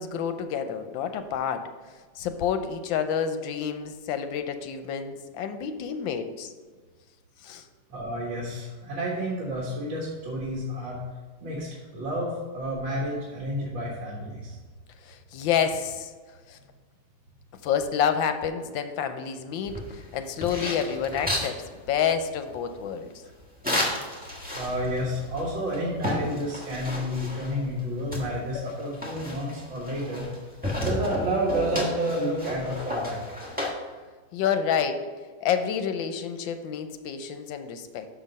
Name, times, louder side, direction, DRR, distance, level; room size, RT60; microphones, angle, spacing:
voice 1, 0.0-1.7 2.1-6.5 7.4-7.6 15.0-16.1 16.5-16.6 17.6-23.1 34.3-35.1 35.4-38.1, left 7 dB, 85° left, 8 dB, 1.4 m, -29 dB
voice 2, 7.9-11.0 11.4-11.7 11.9-14.6 24.5-30.2 30.8-33.2, equal, 80° right, -4 dB, 2.2 m, -30 dB
sound 1, 19.7-21.6 23.6-25.0 25.4-25.5 25.7-27.6 28.1-30.4 30.6-33.7, left 1 dB, 5° right, 1.1 m, -32 dB
sound 2, 28.5-32.2 32.8-32.9 33.1-33.2, left 4 dB, 30° left, 1.2 m, -47 dB
6.2 x 6.1 x 5.4 m, 1.4 s
omnidirectional pair, 2.1 m